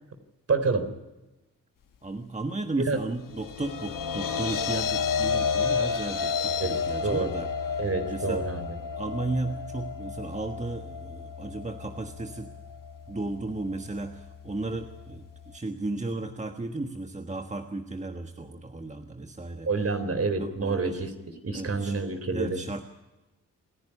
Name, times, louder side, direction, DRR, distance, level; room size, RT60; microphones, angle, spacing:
voice 1, 0.5-0.9 2.8-3.0 6.6-7.3 7.8-8.8 19.6-22.6, right 3 dB, 45° right, 9 dB, 3.7 m, -28 dB
voice 2, 2.0-8.5 9.0-12.5 13.1-19.7 20.4-21.0 21.5-22.0 22.3-22.8, right 2 dB, 20° right, 5 dB, 1.4 m, -34 dB
sound 1, 3.2-15.6, left 6 dB, 75° left, 1.3 m, -32 dB
28.0 x 10.5 x 9.9 m, 1.1 s
cardioid pair, 60°, 32 cm